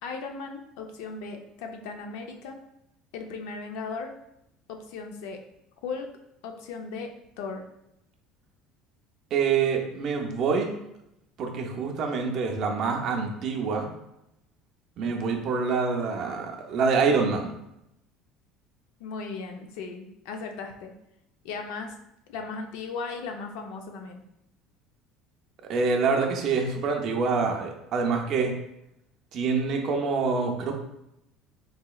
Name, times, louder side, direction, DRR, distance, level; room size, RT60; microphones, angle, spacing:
voice 1, 0.0-2.6 3.1-4.1 4.7-5.4 5.8-6.1 6.4-7.6 19.0-20.9 21.4-21.9 22.3-24.2, left 4 dB, 75° left, 4 dB, 0.5 m, -37 dB
voice 2, 9.3-10.7 11.4-13.9 15.0-17.5 25.6-28.5 29.3-30.8, right 5 dB, 40° right, 2 dB, 0.5 m, -26 dB
4.0 x 2.9 x 2.3 m, 0.81 s
cardioid pair, 165°, 0 cm